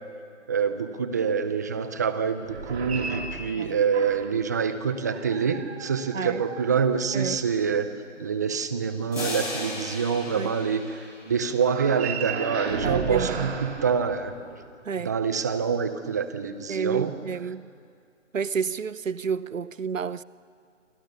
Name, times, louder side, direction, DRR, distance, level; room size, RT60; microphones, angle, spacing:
voice 1, 0.5-7.9 8.2-14.3 15.0-17.1, right 6 dB, 15° right, 0.6 m, -26 dB
sound 1, 2.4-4.5 5.1-7.5 11.6-14.8, right 5 dB, 55° right, 2.6 m, -35 dB
sound 2, 9.1-11.8, left 2 dB, 90° left, 7.5 m, -36 dB
voice 2, 12.8-13.5 14.8-15.1 16.7-17.7 18.3-20.2, right 6 dB, 85° right, 0.9 m, -30 dB
27.5 x 26.0 x 6.7 m
figure-of-eight pair, 155°, 38 cm